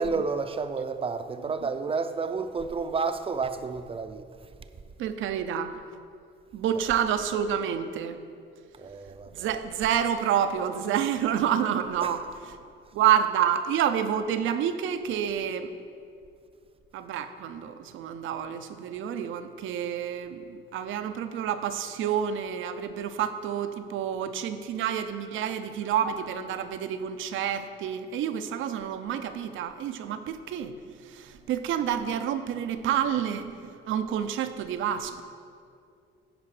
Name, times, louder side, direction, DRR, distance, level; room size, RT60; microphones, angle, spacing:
voice 1, 0.0-4.5 6.7-6.9 8.7-9.5 12.0-12.2 25.2-25.6, right 4 dB, 30° right, 10 dB, 0.5 m, -31 dB
voice 2, 5.0-5.8 6.5-8.2 9.3-12.2 12.9-15.7 16.9-30.7 31.1-35.2, right 9 dB, 80° right, 10 dB, 0.6 m, -28 dB
10.0 x 5.2 x 4.8 m, 2.4 s
cardioid pair, 90°, 20 cm